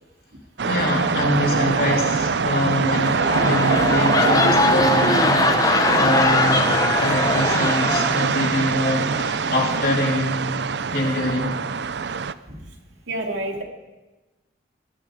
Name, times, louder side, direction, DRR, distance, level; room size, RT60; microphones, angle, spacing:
voice 1, 0.6-10.5 10.9-11.6, left 1 dB, 50° left, -2 dB, 3.4 m, -24 dB
sound 1, 0.6-12.3, right 5 dB, 70° right, 0.5 m, -23 dB
sound 2, 2.8-8.7 9.1-9.4, left 3 dB, 20° left, 0.7 m, -22 dB
voice 2, 13.1-13.6, right 1 dB, 85° right, 2 dB, 2.5 m, -27 dB
20.5 x 12.5 x 4.8 m, 1.1 s
head